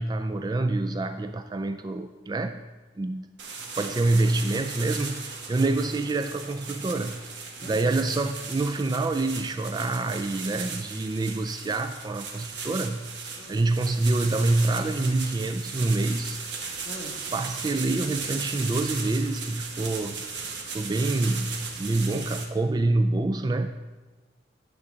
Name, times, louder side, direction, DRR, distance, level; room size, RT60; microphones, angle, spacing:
voice 1, 0.0-2.6 3.0-3.3 3.8-7.2 7.6-16.4 17.3-20.5 20.7-23.7, right 2 dB, 25° right, 8 dB, 0.3 m, -26 dB
sound 1, 3.4-22.4, right 5 dB, 80° right, 1.3 m, -37 dB
voice 2, 7.6-8.1 13.4-13.6 16.8-17.2, equal, 35° left, -2 dB, 1.8 m, -42 dB
11.5 x 3.9 x 7.7 m, 1.3 s
head